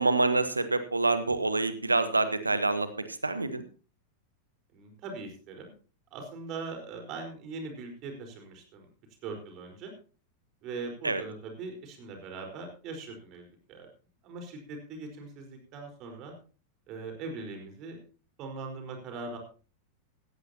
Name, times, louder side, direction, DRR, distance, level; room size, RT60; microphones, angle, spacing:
voice 1, 0.0-3.6 11.0-11.2, right 3 dB, 80° right, 12 dB, 1.3 m, -27 dB
voice 2, 4.7-5.7 6.1-8.9 9.2-9.9 10.6-13.9 14.2-16.3 16.9-18.0 18.4-19.4, right 3 dB, 40° right, 3 dB, 4.6 m, -41 dB
17.0 x 14.5 x 2.9 m, 0.37 s
figure-of-eight pair, 90°, 0 cm